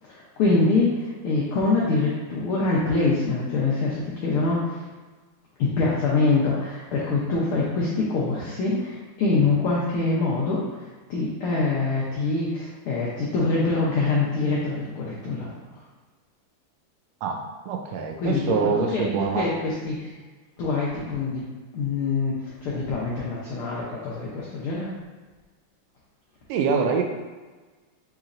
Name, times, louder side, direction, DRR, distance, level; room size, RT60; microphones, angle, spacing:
voice 1, 0.0-4.9 5.6-15.8 18.2-20.2 20.6-25.0, left 3 dB, 80° left, -6 dB, 1.2 m, -25 dB
voice 2, 17.2-19.5 26.5-27.0, right 5 dB, 80° right, 3 dB, 1.5 m, -25 dB
6.8 x 3.1 x 2.5 m, 1.3 s
omnidirectional pair, 3.5 m